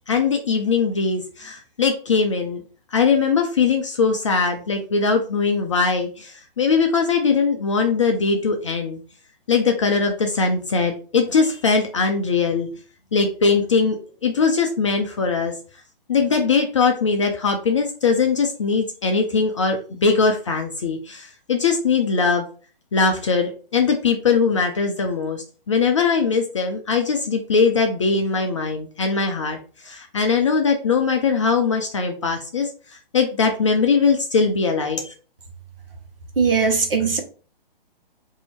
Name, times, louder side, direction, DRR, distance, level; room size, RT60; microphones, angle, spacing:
voice 1, 0.1-2.6 2.9-9.0 9.5-12.7 13.1-15.5 16.1-22.4 22.9-32.7 33.1-35.1, left 5 dB, 35° left, 3 dB, 0.4 m, -21 dB
voice 2, 36.4-37.2, right 5 dB, 70° right, 3 dB, 1.1 m, -19 dB
2.7 x 2.7 x 4.2 m, 0.39 s
figure-of-eight pair, 135°, 29 cm